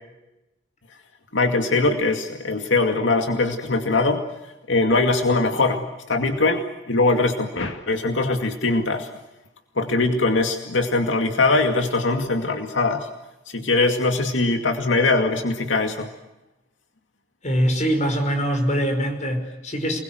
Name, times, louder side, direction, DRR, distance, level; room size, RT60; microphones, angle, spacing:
voice 1, 1.3-4.2 4.7-9.1 9.8-13.1 13.5-16.1, left 3 dB, 80° left, 4 dB, 2.3 m, -21 dB
voice 2, 17.4-20.0, equal, 40° left, 6 dB, 5.5 m, -23 dB
29.0 x 21.5 x 8.0 m, 0.98 s
head